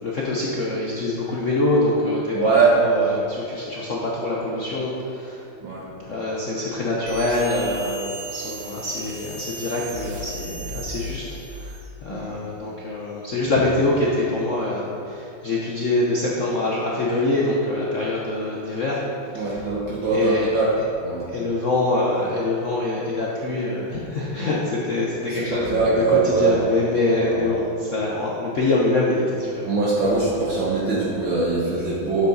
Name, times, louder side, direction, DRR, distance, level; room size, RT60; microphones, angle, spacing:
voice 1, 0.0-5.4 6.0-11.2 11.5-11.7 12.0-19.0 19.3-19.6 20.1-20.5 20.8-20.9 21.3-29.7, left 2 dB, 65° left, -5 dB, 0.7 m, -24 dB
voice 2, 2.3-2.7 3.0-3.2 5.6-5.9 12.1-12.4 19.3-20.7 21.0-21.2 25.3-26.5 27.2-27.4 29.7-32.3, right 4 dB, 65° right, -7 dB, 1.8 m, -22 dB
sound 1, 7.1-11.9, right 1 dB, 85° right, 1.9 m, -36 dB
8.3 x 6.6 x 3.9 m, 2.6 s
omnidirectional pair, 2.4 m